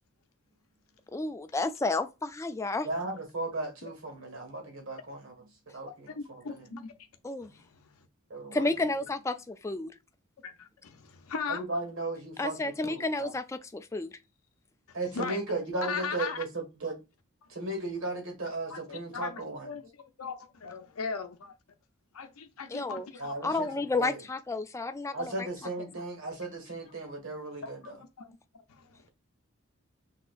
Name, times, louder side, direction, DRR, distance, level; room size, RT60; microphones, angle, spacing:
voice 1, 1.1-2.9 7.2-7.5 8.5-9.9 12.4-13.4 13.7-14.1 22.7-23.0 23.4-25.5, left 2 dB, 15° left, 0.3 m, -31 dB
voice 2, 2.8-5.3 5.7-6.1 6.5-6.6 8.3-8.7 11.5-13.4 14.9-17.0 17.5-19.7 23.2-23.7 24.0-24.2 25.1-28.0, right 2 dB, 65° right, 1.7 m, -36 dB
voice 3, 5.9-7.0 7.4-7.8 10.4-11.6 14.9-15.4 15.8-16.4 18.7-19.9 20.2-21.5 22.1-23.8 27.6-29.0, left 5 dB, 85° left, 0.6 m, -39 dB
6.1 x 2.8 x 2.5 m
head